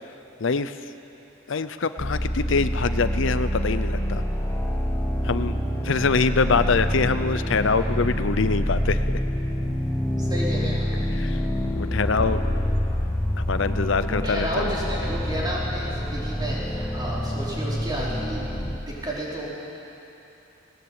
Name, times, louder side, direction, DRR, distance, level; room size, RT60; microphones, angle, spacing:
voice 1, 0.4-0.8 1.5-4.2 5.2-9.0 11.1-11.4 11.8-12.4 13.4-14.7, left 4 dB, 65° left, 11 dB, 0.6 m, -24 dB
sound 1, 2.0-18.8, equal, 10° left, 1.1 m, -26 dB
voice 2, 10.2-10.9 14.0-18.5 18.9-19.5, right 1 dB, 20° right, -6 dB, 4.9 m, -31 dB
19.5 x 19.0 x 8.9 m, 2.9 s
head